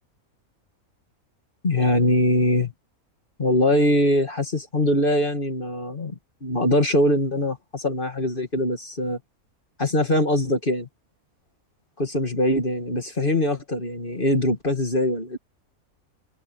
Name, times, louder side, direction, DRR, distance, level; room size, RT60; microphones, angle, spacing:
voice 1, 1.6-2.7 3.4-9.2 9.8-10.9 12.0-15.4, left 1 dB, 35° left, 2.5 m, -22 dB
omnidirectional pair, 1.5 m